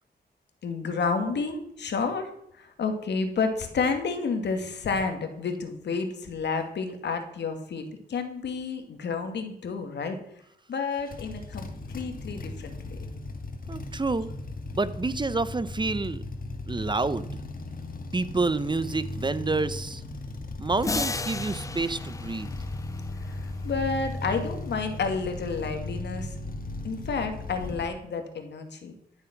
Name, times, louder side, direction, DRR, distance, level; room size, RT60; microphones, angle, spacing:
voice 1, 0.6-2.3 2.5-10.2 10.7-13.0 23.2-26.4 26.8-28.9, left 4 dB, 85° left, 6 dB, 2.2 m, -30 dB
sound 1, 11.0-27.9, left 2 dB, 55° left, 2.1 m, -37 dB
voice 2, 13.7-14.3 14.7-16.2 16.7-17.4 18.1-20.0 20.6-22.5, right 3 dB, 25° right, 15 dB, 0.8 m, -28 dB
sound 2, 20.8-23.3, left 3 dB, 20° left, 0.4 m, -34 dB
13.0 x 7.2 x 6.0 m, 0.75 s
cardioid pair, 80°, 18 cm